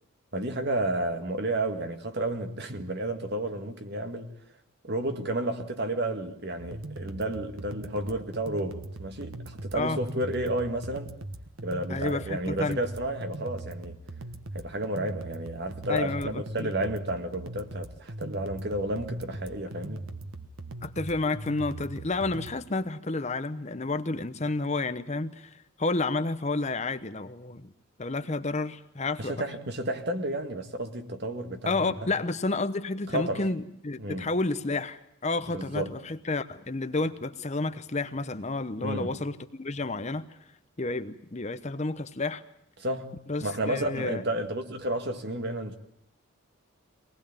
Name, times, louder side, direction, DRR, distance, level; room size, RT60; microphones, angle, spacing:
voice 1, 0.3-4.3 4.8-11.2 11.6-14.0 14.5-20.1 29.2-32.1 33.1-33.5 34.0-34.3 35.5-36.0 38.8-39.2 42.8-43.1 43.4-45.8, right 1 dB, 50° right, 2.0 m, -31 dB
sound 1, 6.6-22.6, right 2 dB, 80° right, 1.4 m, -40 dB
voice 2, 11.9-12.8 15.9-16.7 20.8-27.7 28.0-29.3 31.7-40.3 40.8-42.4 43.3-44.2, left 3 dB, 35° left, 0.9 m, -30 dB
24.0 x 20.0 x 8.8 m
head